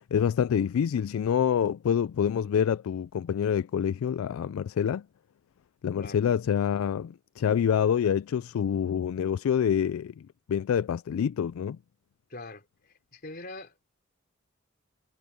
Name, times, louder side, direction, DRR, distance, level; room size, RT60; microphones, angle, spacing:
voice 1, 0.0-5.0 5.8-10.1 10.5-11.8, left 8 dB, 85° left, 0.3 m, -26 dB
voice 2, 12.3-13.8, left 2 dB, 45° left, 3.7 m, -43 dB
head